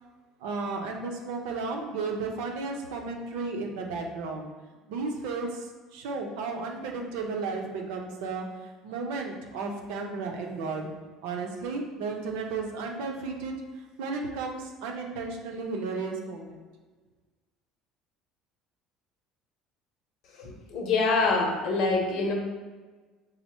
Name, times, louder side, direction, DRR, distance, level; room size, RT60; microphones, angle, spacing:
voice 1, 0.4-4.5 4.9-10.9 11.2-13.5 14.0-16.6, right 4 dB, 85° right, 2 dB, 0.6 m, -34 dB
voice 2, 20.7-22.3, left 3 dB, 60° left, 1 dB, 0.8 m, -25 dB
4.2 x 2.0 x 4.4 m, 1.3 s
supercardioid pair, 110°, 0 cm